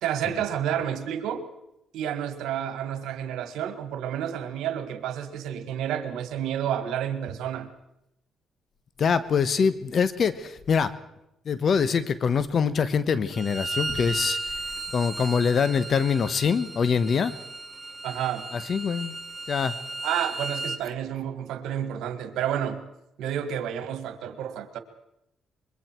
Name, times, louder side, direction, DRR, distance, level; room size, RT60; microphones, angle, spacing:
voice 1, 0.0-1.5 1.9-7.7 18.0-18.5 20.0-22.8 23.2-24.8, right 10 dB, 85° right, 10 dB, 1.8 m, -30 dB
voice 2, 9.0-10.9 11.4-14.4 14.9-17.4 18.5-19.2 19.5-19.7, left 6 dB, 50° left, 14 dB, 1.2 m, -24 dB
Bowed string instrument, 13.3-20.8, right 3 dB, 30° right, 1.2 m, -35 dB
25.5 x 22.5 x 4.6 m, 0.83 s
cardioid pair, 90°, 0 cm